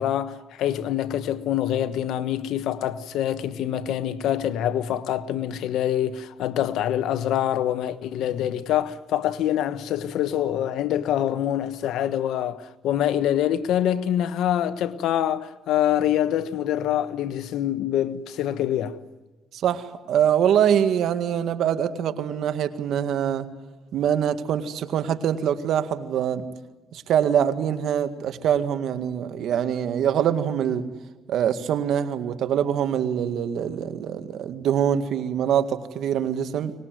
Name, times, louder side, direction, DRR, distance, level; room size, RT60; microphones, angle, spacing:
voice 1, 0.0-19.0, left 11 dB, 85° left, 1.2 m, -25 dB
voice 2, 19.5-23.5 23.9-26.5 26.9-30.9 31.3-36.7, right 9 dB, 75° right, 1.9 m, -24 dB
24.0 x 20.5 x 9.3 m
cardioid pair, 90°, 0 cm